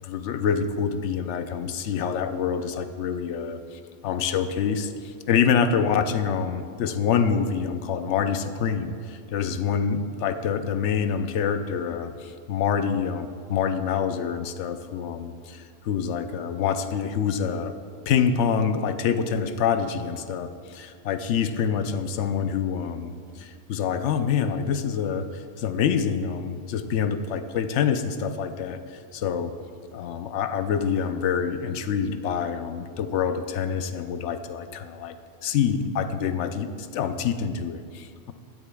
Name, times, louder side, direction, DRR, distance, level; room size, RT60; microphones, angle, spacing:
voice 1, 0.0-17.7 18.1-29.5 29.9-35.1 35.4-38.3, left 7 dB, 85° left, 9 dB, 0.9 m, -26 dB
16.5 x 9.9 x 2.3 m, 2.2 s
omnidirectional pair, 1.2 m